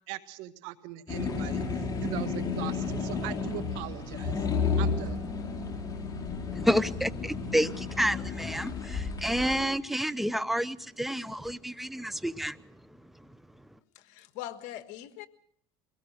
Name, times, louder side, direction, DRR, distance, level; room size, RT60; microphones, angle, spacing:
voice 1, 0.1-4.5 4.8-5.2, right 15 dB, 70° right, 1.6 m, -40 dB
sound 1, 1.1-9.6, left 5 dB, 30° left, 4.8 m, -32 dB
voice 2, 6.6-12.6, equal, ahead, 0.8 m, -29 dB
voice 3, 13.9-15.3, left 13 dB, 65° left, 1.5 m, -41 dB
23.0 x 17.5 x 6.5 m
supercardioid pair, 95°, 13 cm